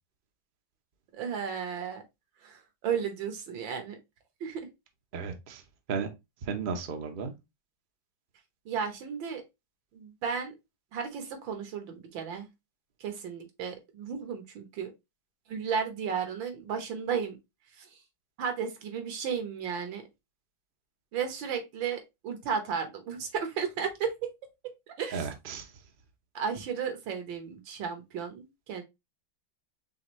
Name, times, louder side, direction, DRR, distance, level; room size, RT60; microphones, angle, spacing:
voice 1, 1.1-2.0 2.4-4.0 4.4-4.7 8.7-9.4 9.9-10.5 10.9-12.5 13.0-14.9 15.5-17.4 17.8-17.9 18.4-20.0 21.1-24.3 24.6-25.3 26.4-28.8, right 7 dB, 75° right, 1.8 m, -34 dB
voice 2, 5.1-5.6 5.9-6.1 6.4-7.3 25.1-25.7, right 5 dB, 50° right, 0.6 m, -34 dB
4.9 x 3.5 x 3.0 m
omnidirectional pair, 2.1 m